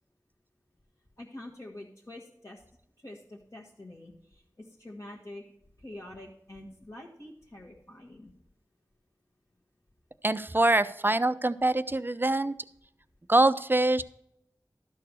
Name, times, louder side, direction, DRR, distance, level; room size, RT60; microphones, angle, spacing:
voice 1, 1.2-2.6 3.0-5.4 5.8-8.3, left 1 dB, 45° left, -4 dB, 1.6 m, -46 dB
voice 2, 10.2-12.5 13.3-14.0, right 2 dB, 30° right, 13 dB, 0.5 m, -24 dB
12.5 x 4.6 x 6.4 m, 0.78 s
wide cardioid pair, 55°, 7 cm